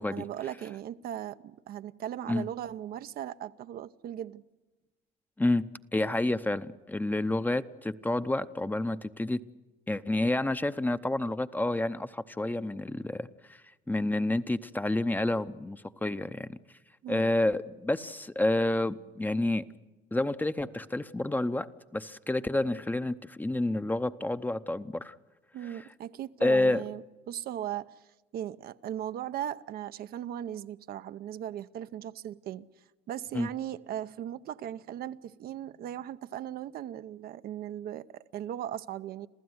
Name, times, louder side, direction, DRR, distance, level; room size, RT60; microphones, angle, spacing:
voice 1, 0.1-4.4 17.0-17.3 25.5-28.0 28.3-32.7 33.1-39.3, right 11 dB, 65° right, 0.7 m, -38 dB
voice 2, 5.9-9.4 9.9-13.6 13.9-16.6 17.1-19.7 20.1-25.1 25.7-25.8 26.4-26.8 33.3-33.5, left 2 dB, 10° left, 0.7 m, -29 dB
27.0 x 15.0 x 9.6 m
cardioid pair, 110°, 17 cm